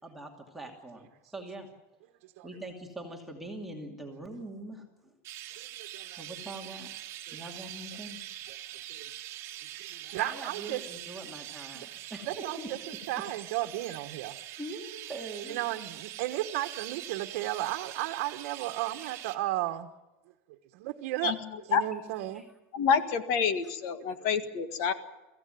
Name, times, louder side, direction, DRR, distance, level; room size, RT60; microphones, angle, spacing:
voice 1, 0.0-1.7 2.4-5.1 6.2-6.9 7.3-8.2 10.2-13.0 14.6-15.6 18.0-18.1 18.9-19.4 22.3-22.4, right 2 dB, 5° right, 0 dB, 2.5 m, -43 dB
Chirp tweet, 5.2-19.4, right 13 dB, 40° right, 1.6 m, -43 dB
voice 2, 5.6-6.2 7.3-7.4 8.5-8.6 8.9-9.0 9.7-10.8 11.7-11.9 12.2-12.8 13.1-14.4 15.5-19.9 20.7-21.4 21.7-22.4, right 15 dB, 65° right, 6 dB, 1.3 m, -34 dB
voice 3, 22.7-24.9, left 6 dB, 55° left, 10 dB, 1.7 m, -27 dB
23.5 x 15.5 x 9.3 m, 1.1 s
supercardioid pair, 165°, 7 cm